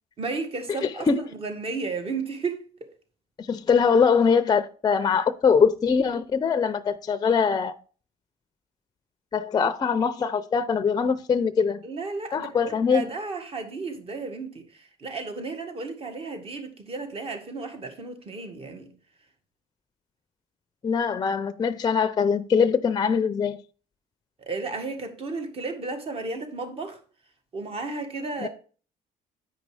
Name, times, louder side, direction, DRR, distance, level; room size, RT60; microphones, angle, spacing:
voice 1, 0.2-2.9 11.8-18.9 24.4-27.0 27.5-28.5, right 3 dB, 40° right, 1.8 m, -33 dB
voice 2, 3.4-7.7 9.3-11.8 12.3-13.0 20.8-23.6 28.4-28.5, left 6 dB, 30° left, 0.5 m, -22 dB
8.9 x 5.2 x 4.8 m
cardioid pair, 105°, 15 cm